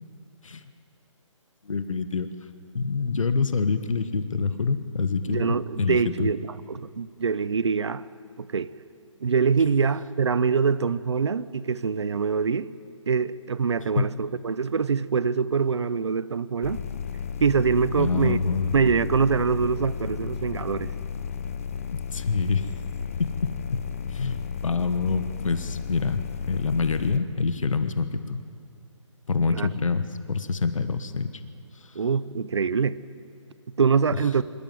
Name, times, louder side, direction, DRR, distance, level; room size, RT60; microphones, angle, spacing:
voice 1, 1.6-2.3 2.7-6.3 13.8-14.1 18.0-18.7 21.9-22.7 23.2-23.8 24.1-26.2 26.5-28.4 29.3-31.4 31.7-32.0 34.1-34.2, left 4 dB, 75° left, 1.3 m, -26 dB
voice 2, 5.3-8.0 8.4-8.7 9.2-12.7 13.1-16.8 17.4-18.4 18.7-20.9 29.5-29.7 31.9-33.0 33.8-34.4, right 5 dB, 55° right, 0.7 m, -24 dB
sound 1, 16.6-27.2, left 7 dB, 25° left, 0.8 m, -33 dB
25.5 x 14.0 x 9.4 m
hypercardioid pair, 170°, 17 cm